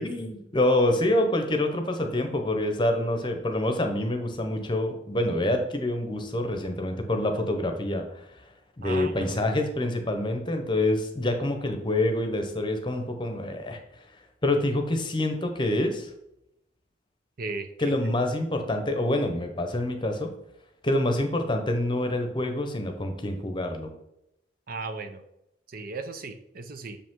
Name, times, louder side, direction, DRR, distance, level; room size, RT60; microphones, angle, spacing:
voice 1, 0.0-8.3 8.8-13.8 14.4-16.1 17.8-20.3 20.8-23.9, left 1 dB, 25° left, 5 dB, 0.8 m, -26 dB
voice 2, 8.8-9.5 17.4-17.9 24.7-25.2 25.7-27.0, right 3 dB, 50° right, 8 dB, 0.6 m, -36 dB
6.7 x 5.3 x 3.7 m, 0.82 s
head